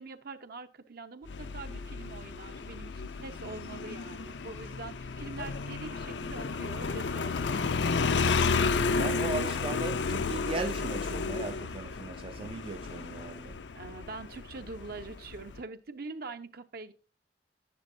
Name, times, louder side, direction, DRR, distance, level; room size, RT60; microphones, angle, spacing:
voice 1, 0.0-8.5 13.7-16.9, right 3 dB, 60° right, 0.8 m, -44 dB
Motorcycle, 1.3-15.6, left 4 dB, 75° left, 0.6 m, -32 dB
voice 2, 9.0-13.6, right 3 dB, 30° right, 0.4 m, -38 dB
11.0 x 9.4 x 2.6 m
head